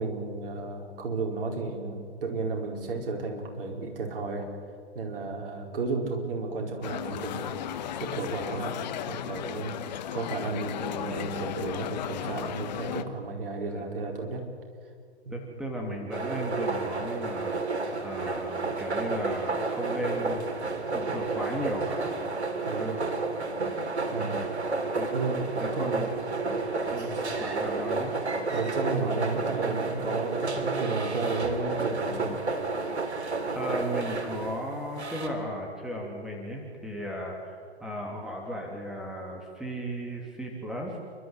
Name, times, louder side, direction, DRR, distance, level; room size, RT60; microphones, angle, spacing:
voice 1, 0.0-4.5 4.9-7.6 8.0-14.4 15.2-15.4 22.6-23.0 24.1-24.4 25.1-26.0 28.5-32.4, right 3 dB, 55° right, 2 dB, 4.7 m, -33 dB
sound 1, 6.8-13.0, left 10 dB, 40° left, 1.2 m, -35 dB
voice 2, 15.3-20.4 20.9-22.3 22.8-22.9 24.2-24.5 25.0-25.1 25.6-26.1 26.9-28.1 33.5-41.0, equal, ahead, -1 dB, 2.8 m, -36 dB
sound 2, 16.1-35.3, right 3 dB, 70° right, 3.5 m, -31 dB
29.5 x 13.0 x 9.6 m, 2.1 s
figure-of-eight pair, 125°, 34 cm